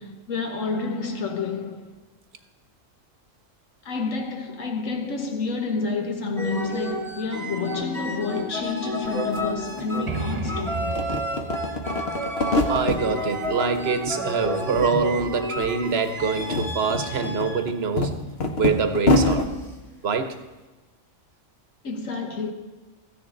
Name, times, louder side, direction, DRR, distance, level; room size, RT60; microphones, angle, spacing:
voice 1, 0.0-1.9 3.8-11.1 21.8-22.5, left 4 dB, 90° left, 1.6 m, -29 dB
sound 1, 6.4-17.7 18.9-19.2, equal, ahead, 1.3 m, -31 dB
sound 2, 9.0-9.1 9.3-10.5 10.8-13.0 13.4-14.2 14.4-15.3 15.6-15.7 16.2-19.5, left 2 dB, 55° left, 1.3 m, -25 dB
sound 3, 10.1-13.7, right 3 dB, 25° right, 1.0 m, -34 dB
voice 2, 12.6-18.2 18.5-19.5 20.0-20.4, right 5 dB, 55° right, 1.0 m, -25 dB
14.0 x 9.7 x 3.8 m
omnidirectional pair, 1.3 m